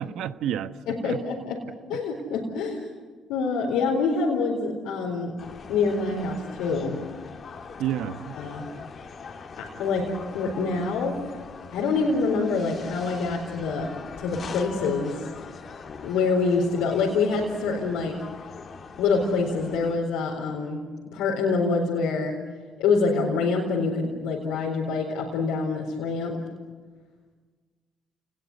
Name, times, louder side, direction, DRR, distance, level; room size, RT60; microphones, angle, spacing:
voice 1, 0.0-1.2 1.9-2.0 7.8-8.4, right 10 dB, 75° right, 12 dB, 1.1 m, -30 dB
voice 2, 0.9-1.6 1.9-3.0 3.3-5.4 5.7-7.0 8.3-8.7 9.6-11.2 11.7-13.9 14.2-15.2 16.0-18.2 19.0-22.4 22.8-26.4, left 4 dB, 85° left, -2 dB, 4.3 m, -26 dB
sound 1, 5.4-20.0, left 5 dB, 50° left, 2.9 m, -42 dB
29.0 x 20.5 x 9.8 m, 1.4 s
supercardioid pair, 65°, 0 cm